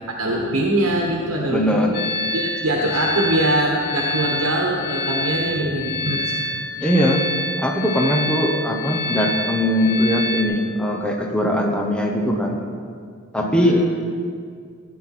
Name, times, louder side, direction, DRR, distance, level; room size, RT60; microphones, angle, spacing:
voice 1, 0.1-2.0 2.3-6.6 13.5-13.8, right 1 dB, 80° right, -1 dB, 1.3 m, -23 dB
voice 2, 1.5-1.9 6.8-7.3 7.6-12.6 13.3-13.9, equal, 5° left, 0 dB, 1.0 m, -20 dB
sound 1, 1.9-10.4, left 1 dB, 45° left, 0.9 m, -27 dB
16.0 x 9.4 x 4.3 m, 2.2 s
head